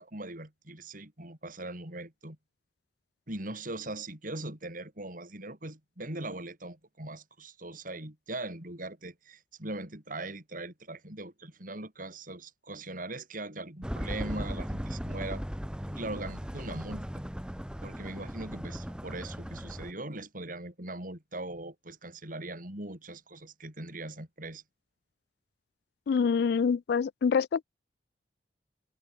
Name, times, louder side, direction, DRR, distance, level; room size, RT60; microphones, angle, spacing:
voice 1, 0.0-2.4 3.3-15.4 15.9-17.1 17.8-24.6, right 2 dB, 50° right, 6.2 m, -40 dB
sound 1, 13.8-19.9, equal, 5° right, 1.2 m, -37 dB
voice 2, 26.1-27.6, left 6 dB, 60° left, 0.3 m, -26 dB
head